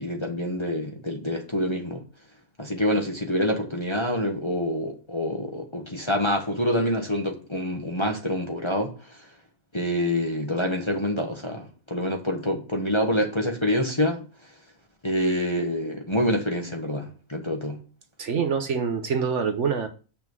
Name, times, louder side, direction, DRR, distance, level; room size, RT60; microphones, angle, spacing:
voice 1, 0.0-2.0 2.6-9.2 9.7-14.2 15.0-17.8, left 1 dB, 20° left, 1.1 m, -26 dB
voice 2, 18.2-19.9, right 6 dB, 55° right, 1.1 m, -25 dB
7.0 x 5.8 x 6.1 m
omnidirectional pair, 1.5 m